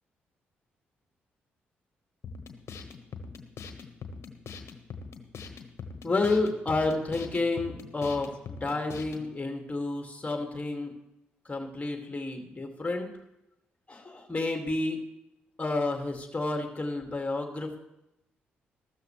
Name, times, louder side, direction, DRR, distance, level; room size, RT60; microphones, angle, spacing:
sound 1, 2.2-9.3, left 5 dB, 55° left, 1.4 m, -42 dB
voice 1, 6.0-10.9 11.5-13.1 13.9-15.0 15.6-17.8, left 2 dB, 25° left, 3 dB, 2.3 m, -30 dB
14.5 x 13.0 x 3.2 m, 0.89 s
hypercardioid pair, 40°, 5 cm